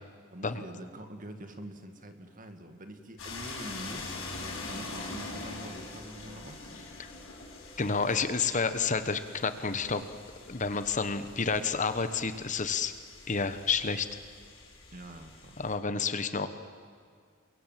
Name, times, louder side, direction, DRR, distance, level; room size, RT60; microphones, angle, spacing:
voice 1, 0.3-4.2 4.7-6.9 14.9-15.6, right 1 dB, 40° right, 6 dB, 2.2 m, -45 dB
sound 1, 3.2-15.8, left 3 dB, 65° left, 6.7 m, -44 dB
voice 2, 7.8-10.0 10.5-12.9 13.3-14.2 15.6-16.5, left 5 dB, 35° left, 11 dB, 1.1 m, -30 dB
30.0 x 23.5 x 7.6 m, 2.1 s
head